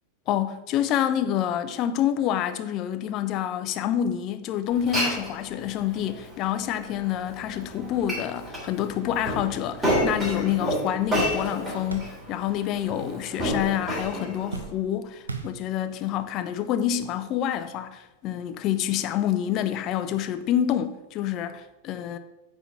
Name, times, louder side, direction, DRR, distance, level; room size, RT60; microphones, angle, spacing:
voice 1, 0.3-22.2, left 10 dB, 35° left, 0.6 m, -27 dB
Glass, 4.7-14.6, equal, 15° right, 2.8 m, -31 dB
sound 1, 8.9-12.7 13.0-13.7 14.0-16.1 16.8-16.9 18.2-18.4, right 4 dB, 75° right, 0.7 m, -41 dB
9.2 x 3.5 x 5.7 m
figure-of-eight pair, 90°, 0 cm